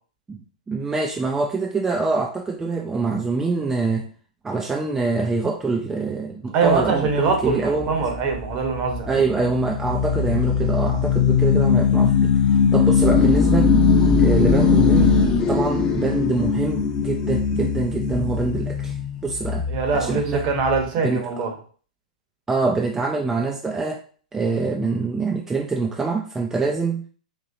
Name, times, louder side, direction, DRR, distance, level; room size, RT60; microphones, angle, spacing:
voice 1, 0.7-4.1 4.4-7.9 9.1-13.7 14.2-15.1 15.5-19.0 19.2-19.7 19.9-20.5 21.0-21.3 22.5-24.0 24.3-27.0, right 3 dB, 10° right, 2 dB, 0.3 m, -25 dB
voice 2, 6.5-9.2 19.7-21.5, right 4 dB, 35° right, 3 dB, 1.0 m, -23 dB
sound 1, 6.7-20.9, left 5 dB, 25° left, 0.6 m, -20 dB
4.3 x 2.9 x 2.6 m, 0.42 s
figure-of-eight pair, 110°, 4 cm